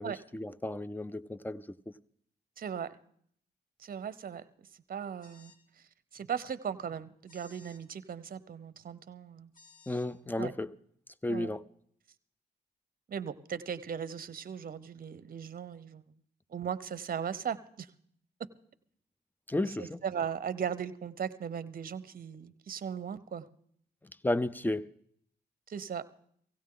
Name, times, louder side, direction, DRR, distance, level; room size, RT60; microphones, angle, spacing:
voice 1, 0.0-1.9 9.9-10.7 11.2-11.6 19.5-20.0 24.2-24.9, left 1 dB, 10° left, 0.6 m, -33 dB
voice 2, 2.6-3.0 3.8-4.4 4.9-5.5 6.1-9.5 10.4-10.5 11.3-11.5 13.1-16.0 16.5-17.9 19.8-23.5 25.7-26.1, right 8 dB, 55° right, 0.8 m, -37 dB
sound 1, 5.2-5.6 7.3-7.8 9.5-10.1, left 3 dB, 50° left, 2.9 m, -58 dB
17.0 x 16.0 x 3.8 m
cardioid pair, 65°, 18 cm